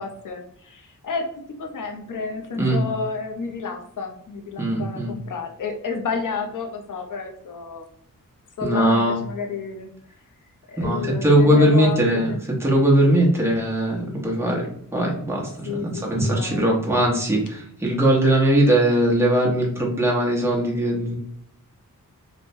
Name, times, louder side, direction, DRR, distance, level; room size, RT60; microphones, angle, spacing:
voice 1, 0.0-7.9 8.6-9.9 10.7-12.4 15.6-16.7, left 4 dB, 65° left, 2 dB, 0.6 m, -31 dB
voice 2, 4.6-5.1 8.6-9.2 10.8-12.3 12.6-21.2, right 1 dB, 10° right, -3 dB, 0.8 m, -20 dB
3.1 x 2.1 x 2.6 m, 0.65 s
wide cardioid pair, 125°, 34 cm